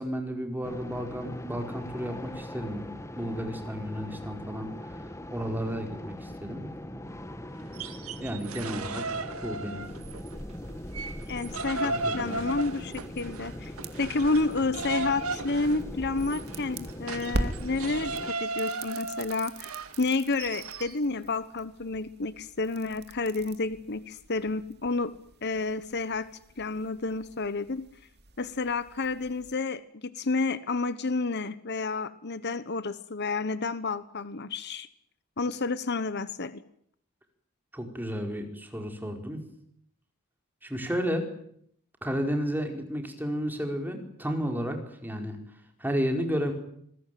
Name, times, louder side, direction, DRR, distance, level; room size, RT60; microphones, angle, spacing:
voice 1, 0.0-2.8 3.1-6.7 8.2-9.8 11.8-12.5 37.7-39.4 40.6-41.3 42.0-45.4 45.8-46.5, equal, 10° right, 4 dB, 4.7 m, -32 dB
sound 1, 0.6-18.3, left 1 dB, 15° left, 1.6 m, -41 dB
sound 2, 7.6-10.4 10.7-21.0, right 3 dB, 90° right, 2.1 m, -36 dB
sound 3, 10.2-29.6, right 1 dB, 50° right, 2.8 m, -43 dB
voice 2, 11.3-19.7 20.0-25.1 25.4-26.3 26.6-27.8 28.4-34.9 35.4-36.6, left 3 dB, 50° left, 14 dB, 1.1 m, -30 dB
27.0 x 21.0 x 9.3 m, 0.69 s
head